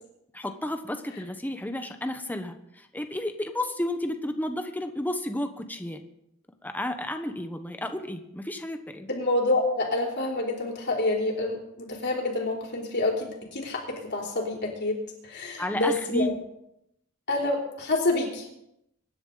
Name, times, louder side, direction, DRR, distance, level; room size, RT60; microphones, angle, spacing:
voice 1, 0.3-6.0 6.6-9.1 15.6-16.3, left 1 dB, 10° left, 6 dB, 1.1 m, -32 dB
voice 2, 9.1-16.4 17.3-18.5, left 2 dB, 55° left, 0 dB, 3.7 m, -28 dB
24.0 x 11.0 x 4.0 m, 0.80 s
head